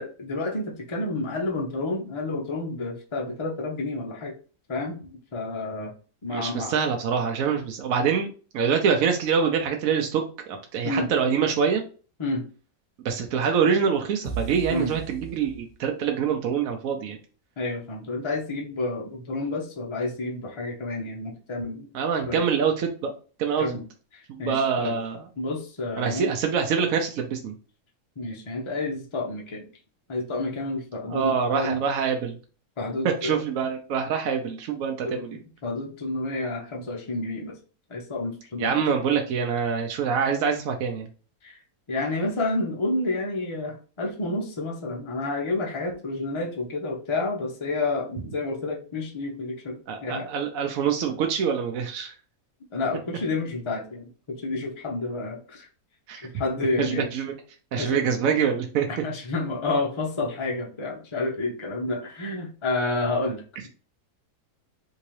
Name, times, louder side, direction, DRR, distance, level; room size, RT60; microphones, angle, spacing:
voice 1, 0.0-4.3 4.7-5.9 6.2-6.7 10.8-11.1 12.2-12.4 14.7-14.9 17.6-21.9 22.3-22.4 23.6-23.8 24.1-25.0 25.4-26.4 28.2-29.7 30.1-31.8 32.8-33.4 35.0-37.6 37.9-38.7 41.4-41.6 41.9-50.3 52.7-55.7 56.2-57.1 57.7-58.0 59.0-63.7, left 2 dB, 55° left, 0 dB, 0.3 m, -30 dB
voice 2, 6.3-8.3 8.5-11.8 13.0-17.2 21.9-23.1 23.4-23.7 24.3-25.3 26.0-27.5 31.1-32.4 33.0-35.4 38.6-41.1 49.9-52.1 56.1-56.3 56.8-57.3 57.7-58.9, right 6 dB, 70° right, 3 dB, 0.9 m, -25 dB
sound 1, 14.2-16.1, right 7 dB, 35° right, 1.0 m, -36 dB
3.6 x 2.9 x 3.0 m, 0.37 s
omnidirectional pair, 1.7 m